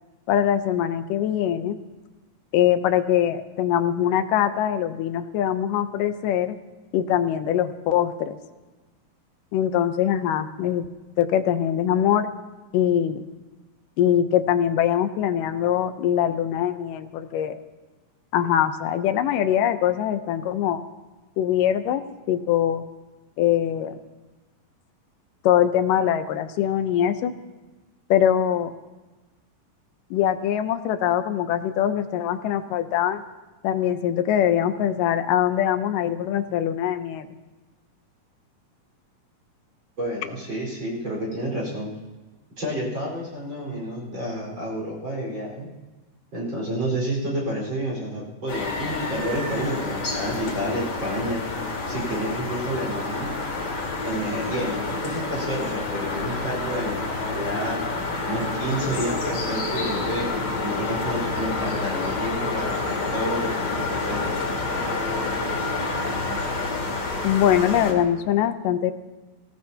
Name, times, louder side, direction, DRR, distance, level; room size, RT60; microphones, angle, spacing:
voice 1, 0.3-1.8 2.5-6.5 6.9-8.4 9.5-10.9 11.2-12.3 12.7-13.2 14.0-17.6 18.3-20.8 21.4-22.0 22.3-22.8 23.4-24.0 25.4-27.3 28.1-28.7 30.1-33.2 33.6-37.3 67.2-68.9, left 10 dB, 75° left, 9 dB, 2.3 m, -22 dB
voice 2, 40.0-41.9 42.6-45.7 46.3-51.4 51.9-53.3 54.0-57.0 57.3-57.8 58.2-60.3 60.6-64.2, right 1 dB, 35° right, -4 dB, 5.3 m, -30 dB
sound 1, 48.5-67.9, left 3 dB, 45° left, 3.5 m, -28 dB
24.5 x 17.0 x 2.9 m, 1.2 s
omnidirectional pair, 4.0 m